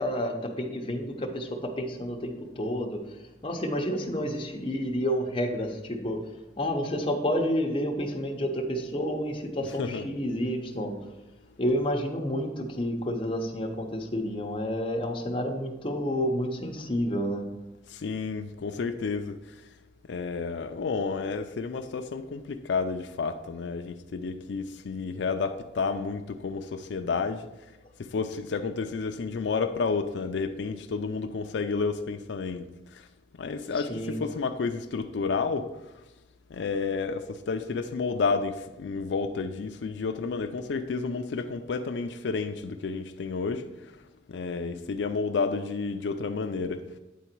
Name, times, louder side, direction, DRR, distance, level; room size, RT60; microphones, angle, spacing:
voice 1, 0.0-6.2 6.6-10.9 11.6-17.5 33.8-34.2, equal, 30° left, 0.8 m, -30 dB
voice 2, 9.6-10.1 17.9-19.4 20.1-27.4 28.1-32.7 33.4-35.7 36.5-43.7 44.3-46.8, left 4 dB, 90° left, 0.4 m, -30 dB
9.2 x 3.9 x 4.5 m
head